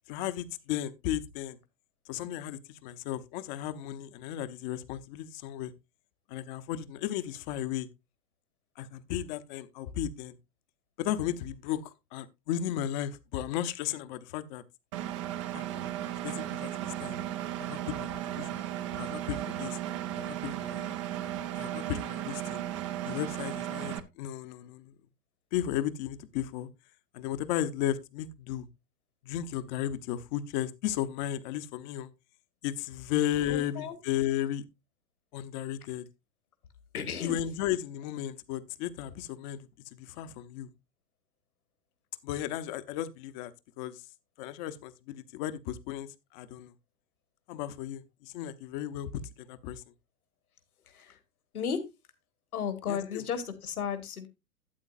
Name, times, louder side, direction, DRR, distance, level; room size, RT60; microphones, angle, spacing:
voice 1, 0.1-1.6 2.1-5.7 6.3-7.9 8.8-10.4 11.0-14.6 15.5-15.9 16.2-17.2 17.6-18.1 18.4-18.6 19.0-19.8 20.1-20.9 21.5-22.6 23.0-24.9 25.5-26.7 27.1-28.7 29.2-32.1 32.6-34.6 35.3-36.1 37.2-40.7 42.2-43.5 43.8-44.0 44.4-46.7 47.5-49.8 52.9-53.2, left 11 dB, 30° left, 0.8 m, -35 dB
Engine, 14.9-24.0, right 12 dB, 20° right, 0.4 m, -35 dB
voice 2, 33.5-34.0 36.9-37.4 50.9-51.2 51.5-51.8 52.5-54.3, left 7 dB, 70° left, 1.9 m, -34 dB
12.5 x 8.6 x 2.5 m
figure-of-eight pair, 110°, 46 cm